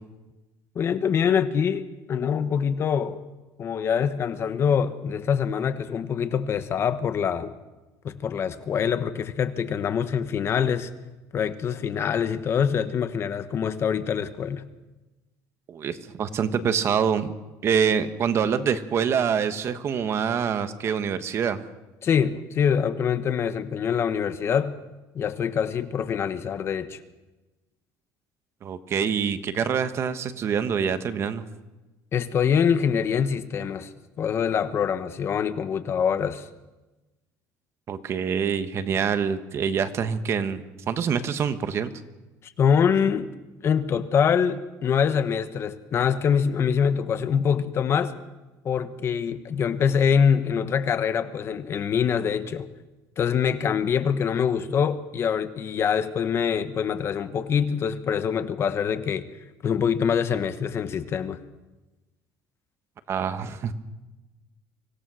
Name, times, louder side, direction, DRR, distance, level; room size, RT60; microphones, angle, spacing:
voice 1, 0.7-3.2 3.6-7.5 8.0-10.9 11.3-14.6 22.0-24.8 25.1-27.0 32.1-36.5 42.4-43.3 43.6-48.2 48.6-52.7 53.2-59.3 59.6-61.4, left 7 dB, 35° left, 11 dB, 1.1 m, -24 dB
voice 2, 15.7-17.3 17.6-21.6 28.6-31.4 37.9-41.9 63.1-63.7, right 7 dB, 40° right, 10 dB, 1.3 m, -25 dB
25.0 x 17.0 x 6.3 m, 1.1 s
cardioid pair, 140°, 7 cm